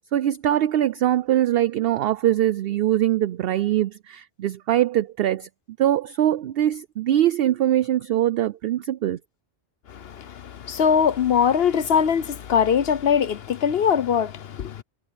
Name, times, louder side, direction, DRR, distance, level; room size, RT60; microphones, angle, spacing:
voice 1, 0.0-5.5 5.8-9.2, right 12 dB, 65° right, 0.7 m, -22 dB
voice 2, 9.9-14.8, left 7 dB, 60° left, 1.0 m, -22 dB
omnidirectional pair, 1.2 m